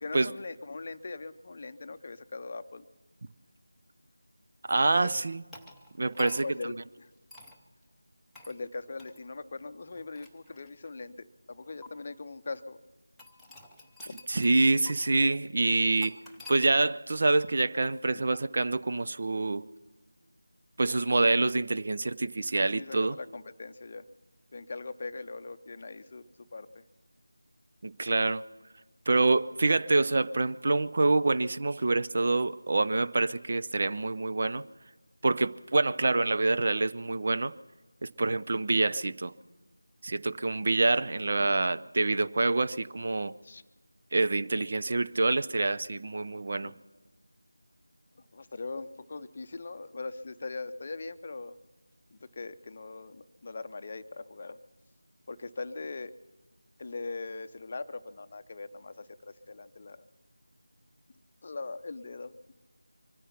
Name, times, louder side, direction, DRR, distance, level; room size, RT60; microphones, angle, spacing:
voice 1, 0.0-2.8 4.9-5.1 6.2-6.7 7.0-7.1 8.5-12.8 14.0-14.1 18.1-18.2 22.7-24.0 24.5-26.2 26.5-26.8 41.5-41.6 43.4-43.6 46.6-46.7 48.3-51.6 52.1-54.6 55.3-56.1 56.8-60.1 61.4-62.3, left 3 dB, 35° left, 0.6 m, -40 dB
voice 2, 4.7-5.4 6.0-6.5 14.3-16.2 16.5-19.6 20.8-23.2 27.8-28.4 29.1-34.6 35.2-37.5 38.0-39.3 40.0-43.3 44.1-46.7, right 3 dB, 40° right, 0.4 m, -26 dB
sound 1, 5.5-6.7 7.3-7.6 8.4-8.6 9.0-9.2 9.9-11.1 11.8-11.9 13.2-14.6 14.9-15.0 16.0-16.6, left 2 dB, ahead, 0.8 m, -49 dB
24.0 x 10.0 x 5.8 m
figure-of-eight pair, 165°, 0 cm